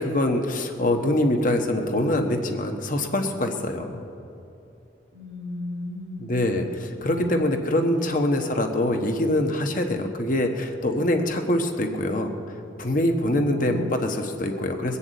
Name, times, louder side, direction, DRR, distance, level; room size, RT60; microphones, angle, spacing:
voice 1, 0.0-4.0 6.2-12.3 12.8-15.0, left 1 dB, 45° left, 4 dB, 1.2 m, -24 dB
voice 2, 5.1-6.3 7.0-7.4 8.0-8.2 13.3-13.9, left 1 dB, 65° right, 1 dB, 2.9 m, -34 dB
21.5 x 7.1 x 8.2 m, 2.7 s
head